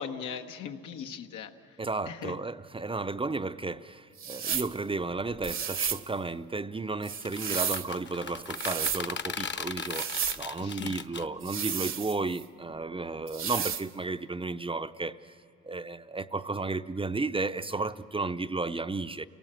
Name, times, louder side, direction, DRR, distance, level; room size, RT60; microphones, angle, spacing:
voice 1, 0.0-1.5 2.0-2.3 10.6-10.9, left 7 dB, 85° left, 1.4 m, -38 dB
voice 2, 1.8-10.1 10.4-15.2 15.6-19.3, right 3 dB, 20° right, 0.6 m, -33 dB
sound 1, 4.2-4.7 5.4-6.1 7.0-7.9 8.4-9.0 9.8-10.4 11.4-12.4 13.3-13.9, right 7 dB, 45° right, 0.9 m, -32 dB
sound 2, 7.1-11.3, left 6 dB, 35° left, 1.0 m, -37 dB
29.0 x 18.5 x 7.7 m
cardioid pair, 90°, 30 cm